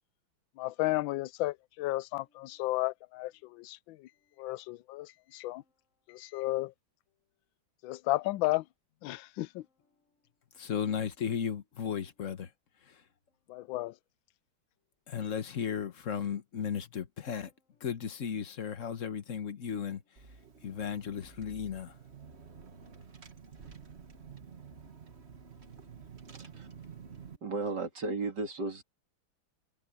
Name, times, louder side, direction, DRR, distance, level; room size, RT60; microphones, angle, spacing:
voice 1, 0.6-4.0 4.4-5.6 6.1-6.7 7.8-8.6 9.0-9.6 13.5-13.9, left 18 dB, 75° left, 1.3 m, -33 dB
voice 2, 10.5-12.5 12.8-13.0 15.1-17.5 17.8-20.2 20.6-22.0, left 7 dB, 45° left, 1.3 m, -35 dB
Car / Engine, 20.2-27.4, right 6 dB, 35° right, 1.7 m, -50 dB
voice 3, 27.4-28.8, right 3 dB, 55° right, 3.1 m, -34 dB
omnidirectional pair, 2.3 m